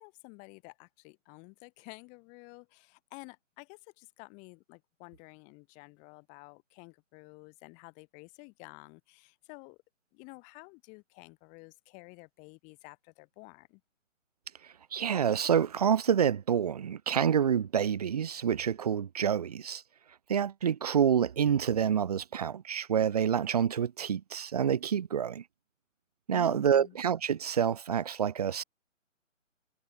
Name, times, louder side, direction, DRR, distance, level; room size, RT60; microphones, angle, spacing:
voice 1, 0.0-9.8 10.1-13.8 26.3-27.0, left 31 dB, 20° left, 3.1 m, -51 dB
voice 2, 14.9-19.8 20.3-25.4 26.3-28.6, right 8 dB, 30° right, 0.6 m, -27 dB
hypercardioid pair, 150°, 39 cm